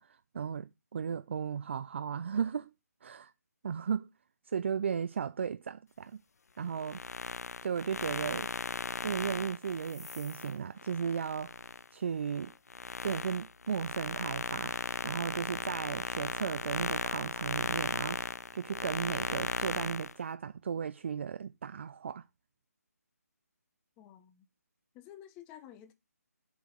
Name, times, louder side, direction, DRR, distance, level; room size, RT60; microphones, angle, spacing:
voice 1, 0.0-2.7 3.0-3.3 3.6-4.1 4.5-6.2 6.6-7.0 7.6-8.5 9.0-11.5 11.9-12.5 13.0-14.7 15.0-22.2, right 7 dB, 45° right, 0.3 m, -35 dB
sound 1, 6.7-11.8 12.3-20.1, left 5 dB, 70° left, 0.4 m, -37 dB
voice 2, 24.0-24.5 24.9-25.9, left 11 dB, 15° left, 0.6 m, -51 dB
8.0 x 4.7 x 5.1 m
figure-of-eight pair, 150°, 9 cm